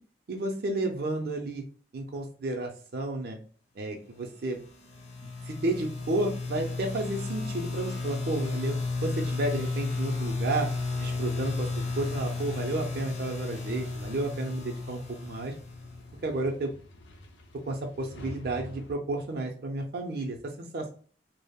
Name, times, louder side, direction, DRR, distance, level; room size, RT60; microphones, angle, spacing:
voice 1, 0.3-1.6 1.9-3.4 3.8-4.6 5.5-8.8 9.0-10.7 11.0-15.5 16.2-16.7 17.7-20.9, right 2 dB, 60° right, 1 dB, 0.5 m, -32 dB
sound 1, 4.5-16.3, left 3 dB, 40° left, 0.5 m, -33 dB
sound 2, 8.6-19.0, left 1 dB, 85° left, 0.5 m, -49 dB
2.2 x 2.0 x 3.4 m, 0.42 s
head